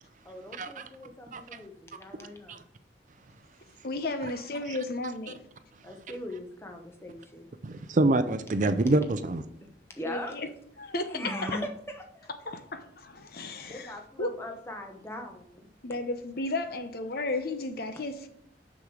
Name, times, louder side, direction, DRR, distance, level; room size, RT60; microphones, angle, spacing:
voice 1, 0.2-2.6 5.8-7.5 10.0-10.4 11.1-12.3 13.7-15.7, left 1 dB, 15° left, 3 dB, 1.1 m, -40 dB
voice 2, 3.8-5.4 10.1-10.5 10.8-11.2 11.5-11.6 12.5-14.3 15.8-18.3, left 2 dB, 60° left, 8 dB, 0.8 m, -34 dB
voice 3, 7.6-9.4, right 2 dB, 45° right, 10 dB, 0.5 m, -25 dB
6.8 x 6.2 x 4.9 m, 0.73 s
head